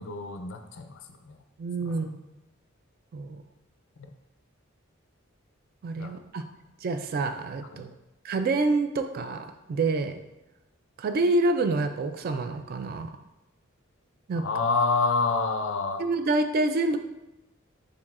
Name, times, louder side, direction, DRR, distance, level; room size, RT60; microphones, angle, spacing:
voice 1, 0.0-1.4 1.8-2.0 4.0-4.1 5.9-6.1 7.7-7.9 14.4-16.1, left 4 dB, 65° left, 7 dB, 0.4 m, -28 dB
voice 2, 1.6-2.2 3.1-3.4 5.8-6.4 6.8-7.9 8.2-10.2 11.0-13.1 14.3-14.4 16.0-17.0, right 2 dB, 50° right, 8 dB, 0.3 m, -27 dB
6.9 x 2.6 x 2.4 m, 0.97 s
head